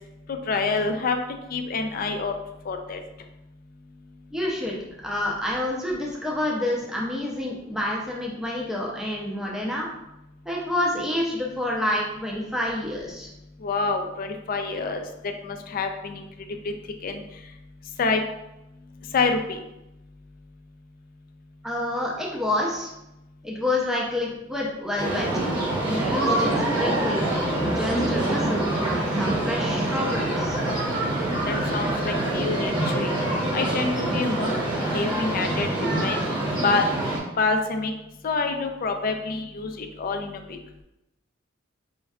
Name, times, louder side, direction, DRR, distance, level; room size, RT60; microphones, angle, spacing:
voice 1, 0.3-1.2 1.5-2.3 2.7-3.0 13.6-15.0 15.4-16.3 16.6-16.7 17.0-17.2 18.0-18.2 19.1-19.6 31.5-33.1 33.5-34.5 34.9-35.7 36.0-36.2 36.6-36.9 37.4-37.9 38.2-40.6, left 4 dB, 45° left, 5 dB, 0.4 m, -26 dB
voice 2, 4.3-4.8 5.0-9.9 10.4-13.3 21.6-22.9 23.4-25.3 25.8-27.2 27.6-30.6, left 1 dB, ahead, -3 dB, 0.5 m, -28 dB
sound 1, 25.0-37.2, right 1 dB, 25° right, 0.9 m, -25 dB
5.2 x 2.2 x 2.3 m, 0.91 s
head